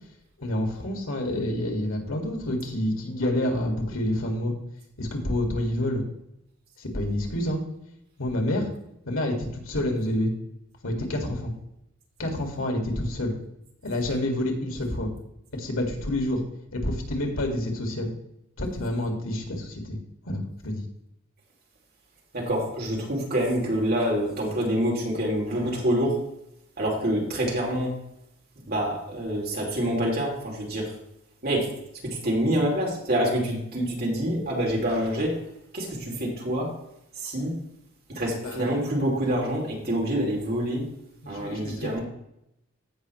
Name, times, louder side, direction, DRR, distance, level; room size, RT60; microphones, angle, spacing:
voice 1, 0.4-4.5 5.0-6.0 6.8-7.6 8.2-8.7 9.0-10.3 10.8-11.5 12.2-13.3 13.8-15.1 15.5-16.4 16.7-18.1 18.6-20.0 20.2-20.9 38.2-38.7 41.2-42.0, left 1 dB, 90° left, 3 dB, 2.0 m, -28 dB
voice 2, 22.3-26.2 26.8-27.9 28.7-30.9 31.4-31.7 32.2-35.4 35.7-36.7 37.2-37.5 38.1-40.8 41.3-42.0, equal, 50° right, -2 dB, 2.8 m, -26 dB
15.5 x 5.5 x 3.1 m, 0.81 s
head